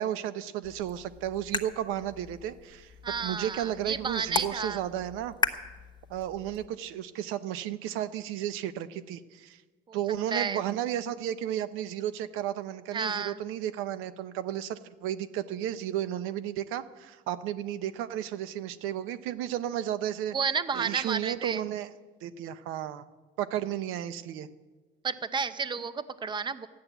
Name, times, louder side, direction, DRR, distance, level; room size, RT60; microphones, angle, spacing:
voice 1, 0.0-5.3 6.1-9.6 9.9-20.4 20.7-21.9 22.2-23.0 23.4-24.5, right 11 dB, 90° right, 13 dB, 0.8 m, -33 dB
sound 1, 0.6-6.7, left 4 dB, 20° left, 1.1 m, -37 dB
voice 2, 3.0-4.8 9.9-10.0 10.3-10.6 12.9-13.4 20.3-21.6 25.0-26.7, right 5 dB, 20° right, 13 dB, 0.7 m, -31 dB
13.5 x 10.5 x 8.1 m, 1.3 s
cardioid pair, 115°, 21 cm